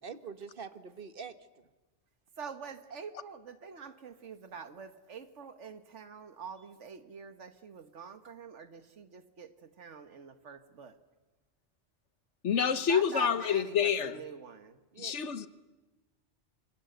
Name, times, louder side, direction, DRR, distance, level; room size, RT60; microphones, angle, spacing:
voice 1, 0.0-1.6 14.9-15.5, right 6 dB, 50° right, 1.5 m, -45 dB
voice 2, 2.4-11.0 12.9-14.8, right 6 dB, 90° right, 1.7 m, -46 dB
voice 3, 12.4-14.2 15.0-15.5, left 7 dB, 80° left, 1.4 m, -28 dB
26.5 x 25.0 x 8.0 m
omnidirectional pair, 1.2 m